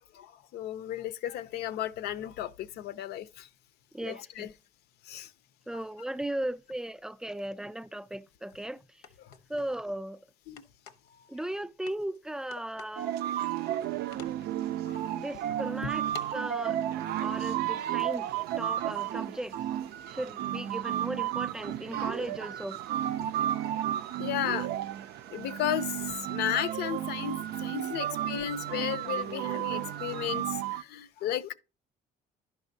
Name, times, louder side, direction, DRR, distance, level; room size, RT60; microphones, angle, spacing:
voice 1, 0.1-3.5 4.0-4.5 5.1-5.3 5.7-5.8 10.5-10.6 14.8-15.1 17.3-17.4 24.0-24.7 25.3-31.5, left 11 dB, 75° left, 0.6 m, -34 dB
voice 2, 3.9-4.5 5.7-8.8 9.5-10.2 11.3-13.2 15.2-16.0 16.3-16.8 17.2-18.3 18.6-19.5 20.1-22.8, right 1 dB, 5° right, 0.3 m, -36 dB
sound 1, 8.5-8.6 9.0-9.7 10.6-11.1 11.9-12.2 12.5-13.0 13.5-13.9 14.1-14.5 15.1-15.2 16.1-16.4, left 6 dB, 90° left, 0.9 m, -48 dB
sound 2, 13.0-30.8, right 12 dB, 75° right, 0.4 m, -33 dB
11.5 x 5.3 x 2.7 m
cardioid pair, 110°, 17 cm